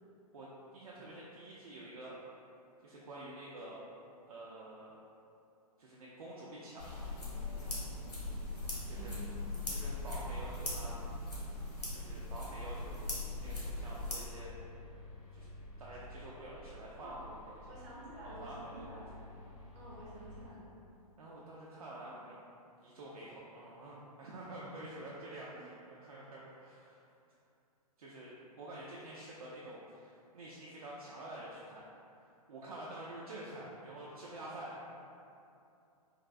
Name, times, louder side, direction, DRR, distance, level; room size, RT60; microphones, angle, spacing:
voice 1, 0.7-2.2 2.8-3.8 4.3-4.9 5.8-7.9 8.9-9.1 9.7-11.0 11.9-13.1 13.4-14.5 15.3-15.5 15.8-17.4 17.7-17.8 18.2-19.0 21.2-22.4 22.8-27.1 28.0-31.8 32.5-35.0, right 1 dB, 65° right, -6 dB, 0.4 m, -48 dB
sound 1, 6.8-14.1, left 2 dB, 85° left, 0.9 m, -40 dB
sound 2, 7.6-20.5, left 1 dB, 25° left, 0.4 m, -52 dB
voice 2, 8.8-9.5 17.0-17.2 17.7-19.1 19.7-20.7 25.5-25.6, right 1 dB, 25° right, -6 dB, 0.6 m, -50 dB
3.2 x 2.5 x 2.4 m, 2.7 s
figure-of-eight pair, 115°, 20 cm